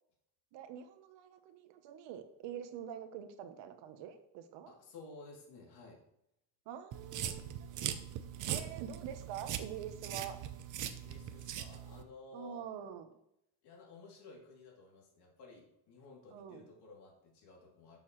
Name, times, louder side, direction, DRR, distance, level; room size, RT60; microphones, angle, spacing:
voice 1, 0.5-4.7 6.6-8.0 8.5-10.4 12.3-13.1 16.3-16.7, right 9 dB, 85° right, 9 dB, 1.1 m, -46 dB
voice 2, 4.7-6.0 10.9-12.7 13.6-18.0, left 3 dB, 65° left, -2 dB, 3.0 m, -54 dB
sound 1, 6.9-12.0, right 10 dB, 45° right, 0.7 m, -41 dB
12.0 x 7.1 x 3.2 m, 0.81 s
cardioid pair, 170°, 43 cm